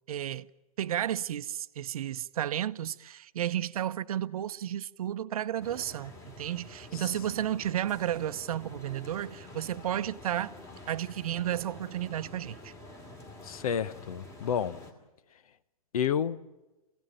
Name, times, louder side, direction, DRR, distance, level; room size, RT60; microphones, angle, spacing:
voice 1, 0.1-0.5 0.8-10.5 10.9-12.7, right 11 dB, 70° right, 0.7 m, -32 dB
sound 1, 5.6-14.9, left 1 dB, 15° left, 2.4 m, -48 dB
voice 2, 13.4-14.8 15.9-16.4, left 8 dB, 70° left, 1.0 m, -30 dB
24.0 x 17.0 x 9.0 m
hypercardioid pair, 160°, 19 cm